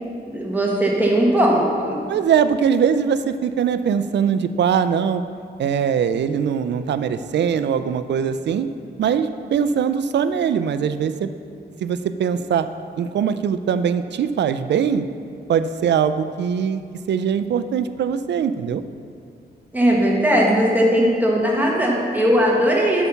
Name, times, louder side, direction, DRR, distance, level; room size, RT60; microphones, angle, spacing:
voice 1, 0.3-2.0 19.7-23.1, equal, 10° right, -3 dB, 1.4 m, -18 dB
voice 2, 2.1-5.2 5.6-8.7 9.0-11.3 11.8-12.7 13.0-15.1 15.5-16.8 17.1-18.8, right 7 dB, 80° right, 12 dB, 0.4 m, -21 dB
8.2 x 5.7 x 5.6 m, 2.3 s
wide cardioid pair, 130°, 18 cm